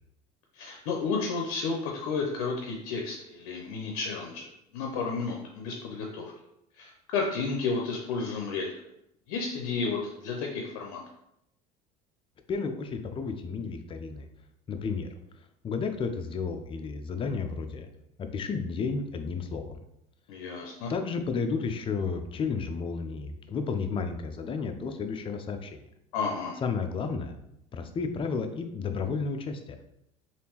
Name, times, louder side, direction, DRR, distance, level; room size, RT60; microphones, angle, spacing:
voice 1, 0.5-6.3 6.8-8.7 9.3-11.0 20.3-20.9 26.1-26.6, left 4 dB, 80° left, 0 dB, 0.5 m, -32 dB
voice 2, 12.5-14.3 14.7-15.1 15.6-17.9 18.2-19.7 20.9-25.7 26.6-27.4 27.7-29.8, left 5 dB, 30° left, 6 dB, 0.4 m, -32 dB
3.4 x 2.5 x 2.9 m, 0.80 s
supercardioid pair, 90°, 19 cm